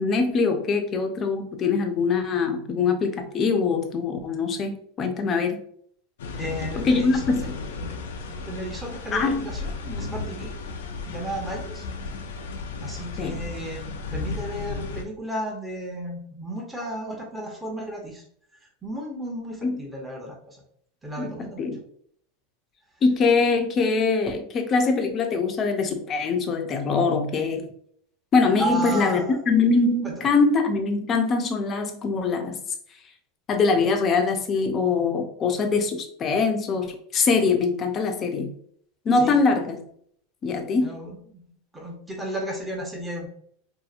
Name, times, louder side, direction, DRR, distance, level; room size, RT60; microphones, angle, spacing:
voice 1, 0.0-5.6 6.8-7.5 9.1-9.5 13.2-13.4 19.6-19.8 21.2-21.8 23.0-27.6 28.3-32.6 33.5-38.5 39.1-39.8 40.4-41.0, left 4 dB, 30° left, 5 dB, 0.5 m, -23 dB
sound 1, 6.2-15.0, left 4 dB, 85° left, 0.4 m, -34 dB
voice 2, 6.4-7.2 7.8-7.9 8.3-10.5 11.0-11.8 12.8-13.8 14.1-18.2 18.8-20.6 21.0-21.7 28.6-29.4 30.0-30.3 39.2-39.4 40.8-41.5 41.7-43.3, right 1 dB, 10° right, -1 dB, 0.7 m, -33 dB
2.8 x 2.5 x 2.4 m, 0.64 s
supercardioid pair, 120°, 0 cm